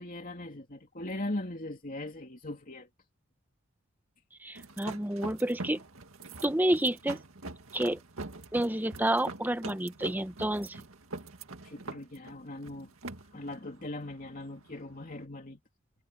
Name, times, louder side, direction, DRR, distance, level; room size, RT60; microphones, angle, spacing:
voice 1, 0.0-2.9 11.6-13.0 13.3-15.6, left 1 dB, 40° left, 3.0 m, -39 dB
voice 2, 4.4-5.8 6.4-7.2 7.7-8.0 8.5-10.8, right 1 dB, 10° right, 0.9 m, -29 dB
sound 1, 4.6-15.2, right 3 dB, 75° right, 2.0 m, -44 dB
head